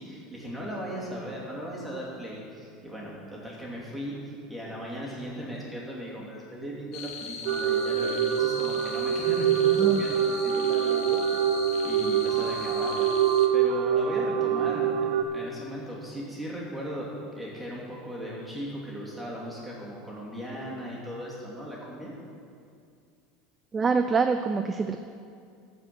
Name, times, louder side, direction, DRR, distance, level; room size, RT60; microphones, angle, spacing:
voice 1, 0.0-11.5 11.8-13.1 13.5-22.1, equal, ahead, -5 dB, 2.7 m, -37 dB
sound 1, 6.9-13.5, left 6 dB, 55° left, 1.1 m, -39 dB
sound 2, 7.5-15.2, right 9 dB, 60° right, 0.7 m, -25 dB
voice 2, 9.7-10.0 23.7-25.0, right 5 dB, 20° right, 7 dB, 0.4 m, -25 dB
13.5 x 5.1 x 7.6 m, 2.3 s
supercardioid pair, 145°, 0 cm